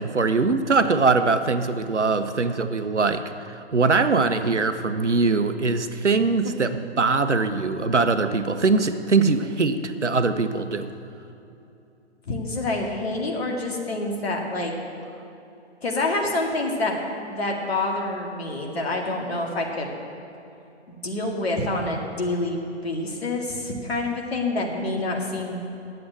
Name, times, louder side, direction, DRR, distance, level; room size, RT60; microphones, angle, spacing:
voice 1, 0.0-3.2 3.7-10.9, right 4 dB, 85° right, 10 dB, 0.8 m, -22 dB
voice 2, 12.3-14.7 15.8-17.0 17.3-19.9 20.9-25.6, left 2 dB, 60° left, 1 dB, 2.1 m, -27 dB
11.0 x 7.8 x 7.8 m, 2.8 s
figure-of-eight pair, 125°, 34 cm